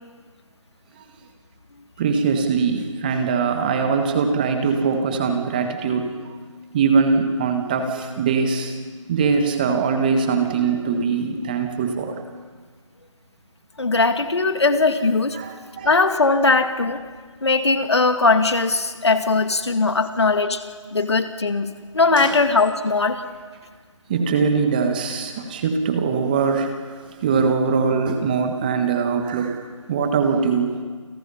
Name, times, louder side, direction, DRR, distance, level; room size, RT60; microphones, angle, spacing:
voice 1, 2.0-6.4 6.7-8.8 9.1-12.1 15.3-15.9 22.2-22.4 24.1-30.8, right 5 dB, 15° right, 6 dB, 1.5 m, -22 dB
voice 2, 13.8-15.4 15.8-17.0 17.4-20.6 20.9-23.2, left 3 dB, 55° left, 8 dB, 2.1 m, -19 dB
29.5 x 28.5 x 5.6 m, 1.5 s
figure-of-eight pair, 160°, 17 cm